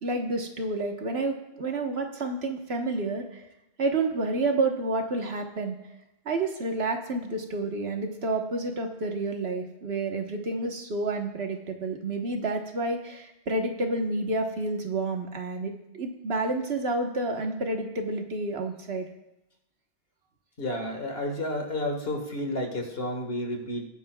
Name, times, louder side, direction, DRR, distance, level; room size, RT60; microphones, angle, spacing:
voice 1, 0.0-3.4 3.8-5.8 6.2-19.1, right 2 dB, 85° right, 3 dB, 1.5 m, -29 dB
voice 2, 20.6-23.9, left 1 dB, 70° left, 3 dB, 1.9 m, -31 dB
21.0 x 9.3 x 2.3 m, 0.91 s
omnidirectional pair, 1.0 m